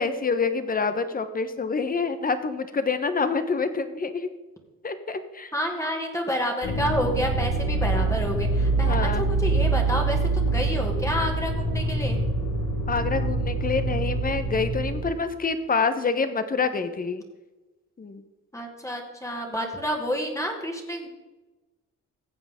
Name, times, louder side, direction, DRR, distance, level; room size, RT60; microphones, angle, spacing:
voice 1, 0.0-4.3 4.8-5.5 8.8-9.2 12.9-17.2 18.0-18.2, left 4 dB, 30° left, 10 dB, 1.1 m, -27 dB
voice 2, 5.5-12.2 18.5-21.1, equal, 10° left, 2 dB, 2.0 m, -29 dB
sound 1, 6.6-15.1, right 3 dB, 60° left, 4.3 m, -25 dB
15.0 x 7.9 x 3.7 m, 1.1 s
cardioid pair, 90°, 30 cm